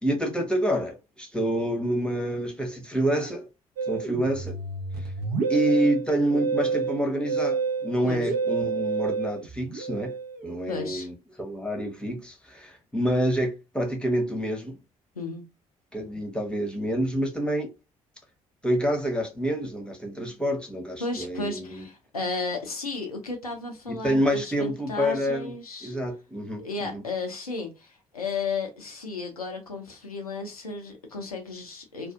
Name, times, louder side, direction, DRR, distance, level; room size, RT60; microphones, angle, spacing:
voice 1, 0.0-3.5 3.9-4.6 5.5-10.1 10.4-14.8 15.9-17.7 18.6-21.8 23.9-25.5 25.8-27.0, equal, 5° left, 0.9 m, -27 dB
Musical instrument, 3.8-10.6, right 5 dB, 55° right, 0.7 m, -29 dB
voice 2, 10.7-11.1 15.2-15.4 21.0-26.0 26.6-32.1, left 3 dB, 90° left, 0.4 m, -34 dB
2.5 x 2.3 x 2.3 m
figure-of-eight pair, 45°, 18 cm